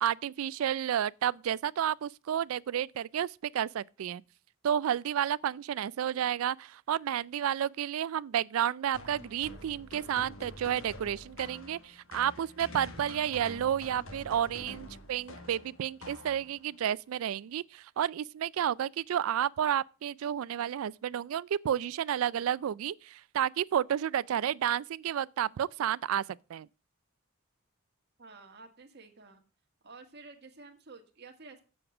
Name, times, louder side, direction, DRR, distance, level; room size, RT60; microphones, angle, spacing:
voice 1, 0.0-4.2 4.6-26.2 26.5-26.7, right 9 dB, 80° right, 0.3 m, -31 dB
sound 1, 8.9-16.8, left 1 dB, 70° left, 1.4 m, -47 dB
voice 2, 28.2-29.4 29.8-31.6, right 3 dB, 55° right, 1.6 m, -51 dB
7.9 x 6.3 x 6.0 m
head